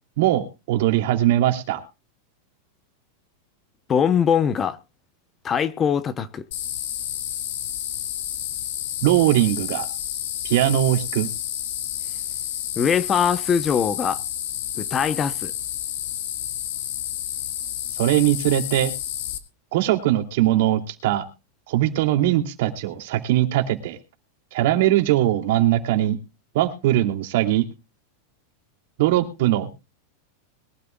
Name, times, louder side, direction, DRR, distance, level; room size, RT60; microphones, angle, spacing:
voice 1, 0.2-1.8 9.0-9.9 10.4-11.3 17.9-18.9 19.7-21.2 21.7-24.0 24.5-26.2 26.5-27.6 29.0-29.7, right 13 dB, 60° right, 2.7 m, -20 dB
voice 2, 3.9-4.8 5.4-6.5 12.8-14.2 14.8-15.5, left 7 dB, 20° left, 0.8 m, -22 dB
sound 1, 6.5-19.4, left 11 dB, 70° left, 2.3 m, -30 dB
22.0 x 12.5 x 2.3 m
supercardioid pair, 160°, 0 cm